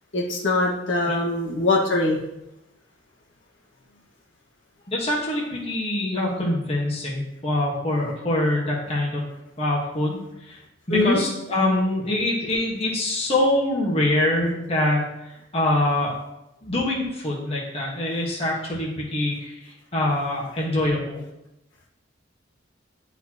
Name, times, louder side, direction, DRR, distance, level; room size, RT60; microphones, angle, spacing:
voice 1, 0.1-2.2 10.9-11.2, left 2 dB, 90° left, -3 dB, 1.6 m, -22 dB
voice 2, 4.9-9.2 9.6-10.2 10.5-10.6 10.9-16.1 16.6-19.6 19.9-21.2, left 1 dB, 30° left, -4 dB, 1.5 m, -24 dB
10.5 x 4.2 x 3.0 m, 0.89 s
head